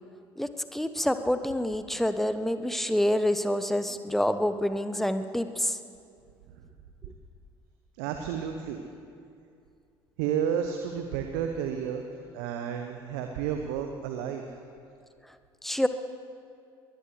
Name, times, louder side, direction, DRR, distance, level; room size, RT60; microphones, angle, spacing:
voice 1, 0.4-5.8 15.6-15.9, left 1 dB, ahead, 10 dB, 0.9 m, -27 dB
voice 2, 7.9-8.8 10.2-12.0 12.3-14.4, right 8 dB, 65° right, 5 dB, 1.0 m, -31 dB
22.0 x 16.5 x 3.3 m, 2.4 s
figure-of-eight pair, 60°, 13 cm